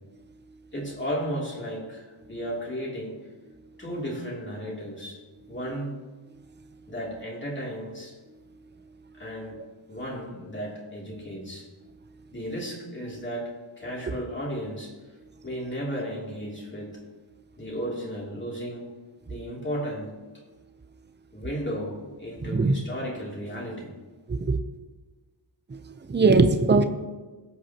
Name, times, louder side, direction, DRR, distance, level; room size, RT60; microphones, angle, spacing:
voice 1, 0.7-3.2 3.8-5.2 5.5-6.0 6.9-8.2 9.1-9.6 9.9-11.7 12.3-14.9 15.4-17.0 17.6-18.9 19.3-20.1 21.3-23.9, equal, 25° left, -3 dB, 2.9 m, -34 dB
voice 2, 25.7-26.8, right 3 dB, 25° right, 7 dB, 0.7 m, -21 dB
20.5 x 8.3 x 2.9 m, 1.2 s
wide cardioid pair, 155°, 47 cm